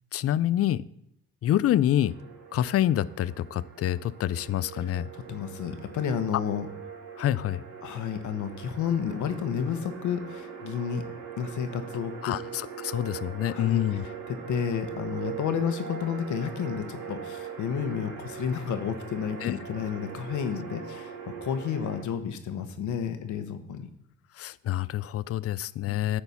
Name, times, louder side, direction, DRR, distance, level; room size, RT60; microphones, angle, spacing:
voice 1, 0.1-0.8 1.4-2.1 2.5-5.1 7.2-7.6 12.2-14.1 19.4-19.5 24.4-26.2, left 12 dB, 50° left, 19 dB, 0.4 m, -27 dB
sound 1, 2.0-22.0, right 7 dB, 85° right, 2.5 m, -41 dB
voice 2, 4.8-6.7 7.8-11.0 11.4-12.4 13.4-21.2 21.4-23.9, left 7 dB, 75° left, 9 dB, 1.1 m, -31 dB
9.6 x 4.5 x 6.9 m, 0.74 s
cardioid pair, 90°, 30 cm